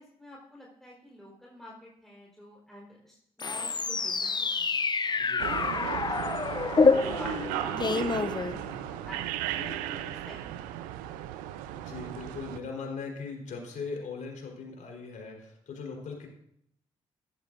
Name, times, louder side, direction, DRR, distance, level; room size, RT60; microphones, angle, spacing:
voice 1, 0.0-4.7 5.4-6.9 7.1-10.7, left 1 dB, 5° left, -4 dB, 4.4 m, -48 dB
sound 1, 3.4-9.1, left 4 dB, 30° left, 0.8 m, -27 dB
sound 2, 5.4-12.6, right 12 dB, 85° right, 0.6 m, -35 dB
voice 2, 11.7-16.3, left 4 dB, 65° left, 1 dB, 4.1 m, -39 dB
14.5 x 12.5 x 2.6 m, 0.71 s
hypercardioid pair, 45°, 14 cm